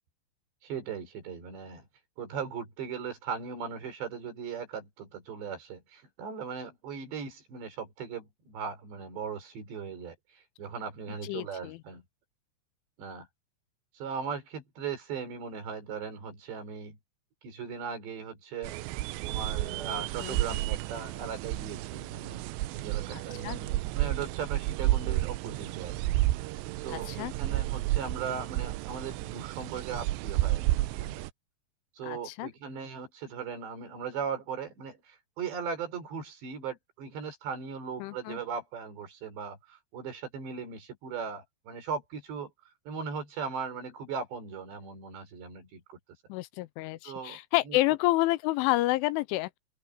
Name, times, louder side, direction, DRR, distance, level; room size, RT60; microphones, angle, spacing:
voice 1, 0.6-1.9 2.2-12.0 13.0-13.3 13.9-17.0 17.4-18.8 19.3-22.4 22.7-25.9 26.8-31.2 32.0-42.5 42.9-46.0 47.0-47.4 47.7-47.8, right 6 dB, 60° right, 7.1 m, -38 dB
voice 2, 11.2-11.8 20.2-20.6 23.1-23.6 26.9-27.3 32.0-32.5 38.0-38.4 46.3-49.6, left 18 dB, 85° left, 3.1 m, -29 dB
sound 1, 18.6-31.3, right 17 dB, 85° right, 2.6 m, -31 dB
omnidirectional pair, 5.6 m